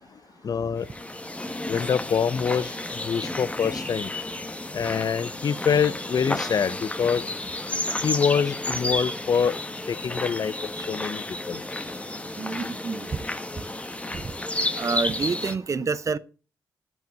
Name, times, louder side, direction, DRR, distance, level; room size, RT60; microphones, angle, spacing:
voice 1, 0.4-0.9 1.7-2.7 3.0-4.1 4.7-7.2 8.0-9.5 9.9-10.5 10.9-11.6, left 7 dB, 50° left, 0.6 m, -25 dB
sound 1, 0.8-15.6, left 1 dB, 15° left, 1.1 m, -32 dB
voice 2, 12.4-13.2 14.1-14.3 14.8-16.2, right 4 dB, 40° right, 0.7 m, -28 dB
10.5 x 6.5 x 5.3 m
hypercardioid pair, 45°, 8 cm